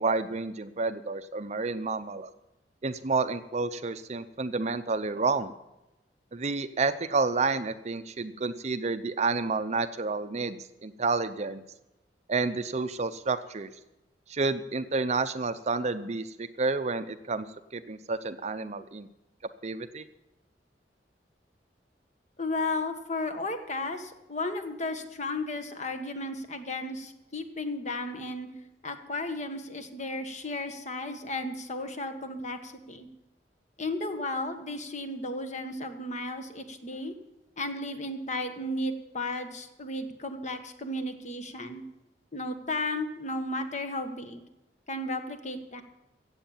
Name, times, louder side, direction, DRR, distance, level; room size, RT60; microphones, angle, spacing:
voice 1, 0.0-2.3 2.8-5.5 6.3-11.6 12.3-13.7 14.3-17.5 17.7-19.1 19.6-20.0, right 3 dB, 40° right, 11 dB, 0.6 m, -30 dB
voice 2, 22.4-28.5 28.8-33.1 33.8-37.1 37.6-41.8 42.3-44.4 44.9-45.8, left 2 dB, 40° left, 7 dB, 1.4 m, -34 dB
15.0 x 8.3 x 7.2 m, 0.95 s
head